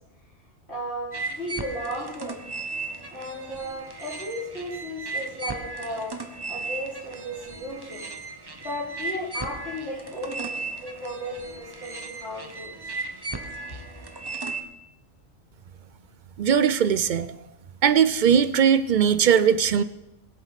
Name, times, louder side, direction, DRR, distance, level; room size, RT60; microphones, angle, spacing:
voice 1, 0.7-2.4 3.1-6.1 6.5-8.1 8.6-12.9, equal, 60° left, -8 dB, 3.6 m, -35 dB
sound 1, 1.1-14.6, right 3 dB, 20° right, 0.8 m, -36 dB
voice 2, 16.4-17.3 17.8-19.8, right 8 dB, 60° right, 13 dB, 0.5 m, -19 dB
20.5 x 8.0 x 4.1 m, 0.94 s
omnidirectional pair, 1.3 m